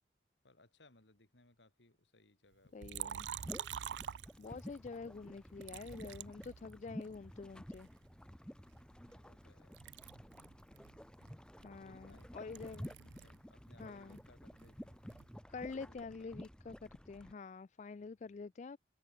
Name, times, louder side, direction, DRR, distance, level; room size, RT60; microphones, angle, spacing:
voice 1, 0.4-4.0 5.9-6.5 9.0-9.8 11.8-15.0 15.9-16.5 18.0-18.4, left 2 dB, 90° left, 3.3 m, -66 dB
voice 2, 2.7-3.3 4.4-7.9 11.6-12.9 13.8-14.2 15.5-18.8, left 4 dB, 40° left, 0.4 m, -47 dB
Liquid, 2.8-4.8 5.6-7.2 7.7-9.5 9.7-13.4 13.7-15.3, right 10 dB, 80° right, 0.4 m, -47 dB
sound 1, 3.4-17.3, equal, 5° left, 1.1 m, -52 dB
head